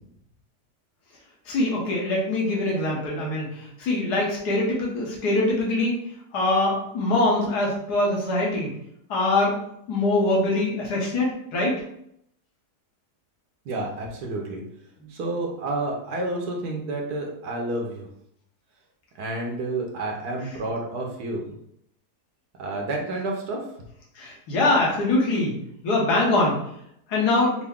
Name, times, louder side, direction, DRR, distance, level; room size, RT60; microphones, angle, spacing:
voice 1, 1.5-6.0 6.3-8.7 9.1-9.6 9.9-11.8 24.1-25.6 25.8-26.6 27.1-27.6, left 2 dB, 75° left, -3 dB, 1.8 m, -23 dB
voice 2, 13.6-14.6 15.1-18.1 19.2-21.4 22.6-23.6, right 2 dB, 70° right, 0 dB, 1.4 m, -30 dB
5.9 x 2.2 x 3.6 m, 0.73 s
omnidirectional pair, 1.7 m